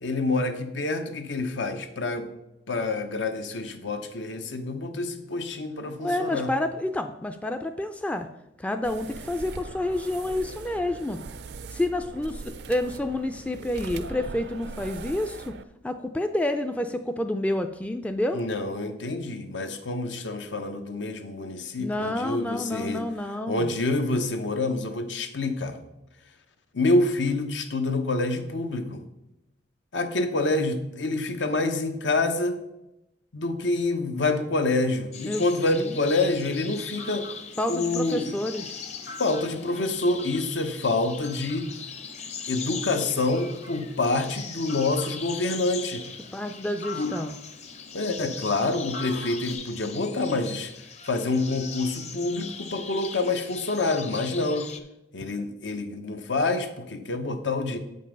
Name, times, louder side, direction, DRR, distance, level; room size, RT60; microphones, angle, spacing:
voice 1, 0.0-2.3 2.7-6.5 18.3-23.1 23.5-25.8 26.7-29.0 29.9-32.6 33.3-37.3 37.7-38.4 39.2-41.7 42.5-46.0 46.9-47.2 47.9-50.7 51.0-54.7 55.1-57.8, left 2 dB, 90° left, 7 dB, 0.9 m, -27 dB
voice 2, 6.0-8.3 8.6-11.2 11.7-12.4 12.7-15.5 15.8-18.4 21.8-23.7 35.2-36.0 37.6-38.8 46.3-47.3, left 1 dB, 5° left, 6 dB, 0.3 m, -29 dB
sound 1, 8.8-15.6, right 4 dB, 65° right, 0.4 m, -40 dB
sound 2, 35.1-54.8, left 6 dB, 40° left, 0.7 m, -40 dB
Fowl, 36.3-49.5, left 2 dB, 65° left, 1.7 m, -46 dB
7.7 x 5.4 x 5.2 m, 0.91 s
head